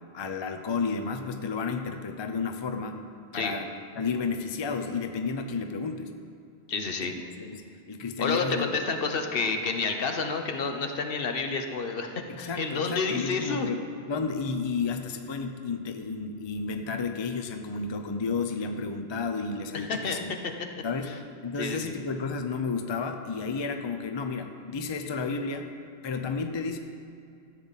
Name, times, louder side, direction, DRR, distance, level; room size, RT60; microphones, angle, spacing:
voice 1, 0.1-3.0 3.3-3.7 3.9-6.1 7.0-8.7 12.3-13.8 14.1-20.3 20.8-21.1 21.4-25.7 26.0-26.8, left 4 dB, 35° left, 6 dB, 0.5 m, -32 dB
voice 2, 6.7-7.1 8.2-13.7 19.9-20.2 21.6-21.9, left 4 dB, 60° left, 5 dB, 1.0 m, -29 dB
14.0 x 8.2 x 4.1 m, 2.4 s
omnidirectional pair, 1.1 m